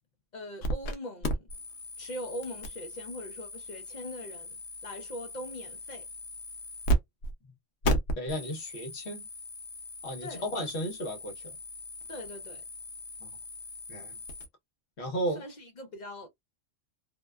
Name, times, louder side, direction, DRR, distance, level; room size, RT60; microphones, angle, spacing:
voice 1, 0.3-1.5 2.0-4.6 4.8-6.1 10.2-10.4 12.1-12.6 15.3-16.3, equal, 45° left, 0.6 m, -41 dB
sound 1, 0.6-0.9 1.2-7.0 7.2-7.3 7.8-14.5, right 1 dB, 85° left, 1.0 m, -35 dB
voice 2, 8.2-9.3 10.0-11.5 13.2-13.3 13.9-14.1 15.0-15.4, equal, 60° left, 1.2 m, -34 dB
2.7 x 2.2 x 2.2 m
omnidirectional pair, 1.3 m